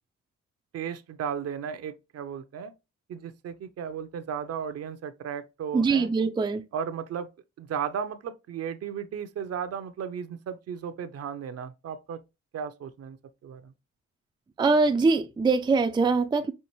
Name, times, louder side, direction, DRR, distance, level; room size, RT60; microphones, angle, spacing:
voice 1, 0.7-2.7 3.1-6.1 6.7-7.3 7.6-12.2 12.5-13.2 13.4-13.7, right 7 dB, 55° right, 0.6 m, -35 dB
voice 2, 5.7-6.6 14.6-16.5, right 4 dB, 15° right, 0.4 m, -23 dB
5.5 x 2.5 x 3.0 m
cardioid pair, 90°, 30 cm